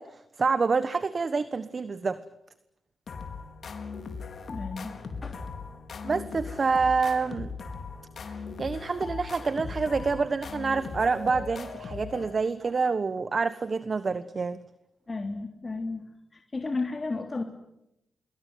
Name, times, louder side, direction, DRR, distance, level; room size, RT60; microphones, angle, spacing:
voice 1, 0.0-2.2 6.0-7.5 8.2-14.6, right 4 dB, 45° right, 13 dB, 1.3 m, -27 dB
sound 1, 3.1-12.6, left 4 dB, 60° left, 4.7 m, -39 dB
voice 2, 4.5-4.9 5.2-5.4 15.1-16.0 16.3-17.4, left 3 dB, 35° left, 4 dB, 3.3 m, -33 dB
25.0 x 22.5 x 9.6 m, 0.85 s
cardioid pair, 65°, 0 cm